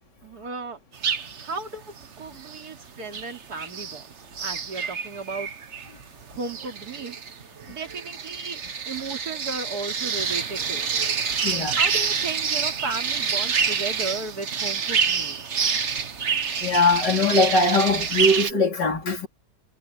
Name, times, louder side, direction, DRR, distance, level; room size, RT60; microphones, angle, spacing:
voice 1, 0.2-0.8 1.4-5.5 6.3-8.6 8.9-10.9 11.5-15.6, right 3 dB, 60° right, 3.4 m, -35 dB
sound 1, 0.9-1.6 2.0-2.8 3.1-4.1 4.3-18.5, right 6 dB, 45° right, 1.4 m, -27 dB
voice 2, 11.2-11.8 16.6-19.3, left 2 dB, 75° left, 4.8 m, -21 dB
omnidirectional pair, 1.9 m